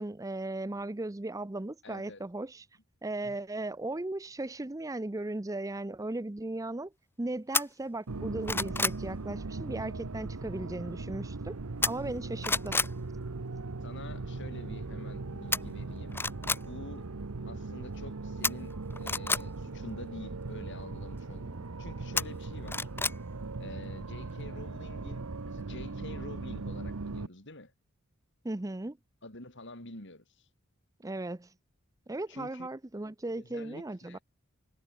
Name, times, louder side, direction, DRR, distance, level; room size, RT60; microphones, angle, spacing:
voice 1, 0.0-2.7 3.0-6.9 7.2-11.6 11.8-12.8 28.4-29.0 31.0-31.5 32.1-34.2, right 2 dB, 15° right, 0.6 m, -37 dB
voice 2, 1.8-2.2 3.2-3.4 13.8-16.2 16.4-17.1 17.4-22.9 23.6-27.7 29.2-30.2 32.3-32.7 33.4-34.2, left 1 dB, 55° left, 6.4 m, -47 dB
sound 1, 7.5-7.6 8.1-9.0 11.8-12.2 12.4-12.9 15.5-15.6 16.1-16.6 18.4-19.4 22.2-23.2 23.5-23.6, left 3 dB, 10° left, 1.1 m, -29 dB
sound 2, 8.1-27.3, right 3 dB, 85° right, 1.0 m, -39 dB
head